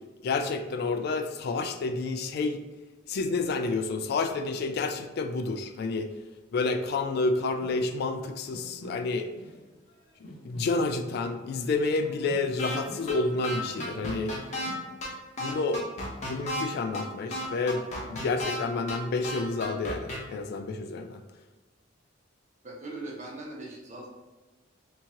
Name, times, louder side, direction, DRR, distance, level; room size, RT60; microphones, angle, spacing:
voice 1, 0.2-2.6 3.1-6.1 6.5-9.3 10.4-14.3 15.4-15.8 16.2-21.2, left 3 dB, 55° left, 8 dB, 0.3 m, -29 dB
sound 1, 7.6-9.6 9.9-14.9, right 1 dB, 90° left, 1.0 m, -48 dB
sound 2, 12.6-12.8 13.1-13.2 13.4-14.7 15.0-15.1 15.4-16.6 16.9-17.0 17.3-18.6 18.9-19.0 19.2-20.2, equal, 40° left, 0.8 m, -33 dB
voice 2, 22.6-24.1, right 2 dB, 40° right, -1 dB, 0.7 m, -40 dB
2.9 x 2.8 x 3.6 m, 1.2 s
head